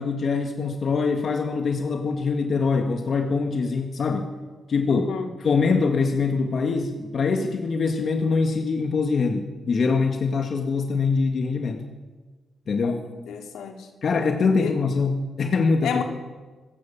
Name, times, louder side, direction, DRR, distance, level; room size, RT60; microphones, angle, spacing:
voice 1, 0.0-4.3 4.7-5.0 5.4-11.9 12.7-13.0 14.0-16.0, left 4 dB, 55° left, 4 dB, 2.0 m, -23 dB
voice 2, 4.9-5.3 12.8-13.9 14.6-14.7 15.8-16.0, left 7 dB, 85° left, 4 dB, 3.0 m, -31 dB
25.5 x 16.0 x 7.2 m, 1.3 s
cardioid pair, 80°, 0 cm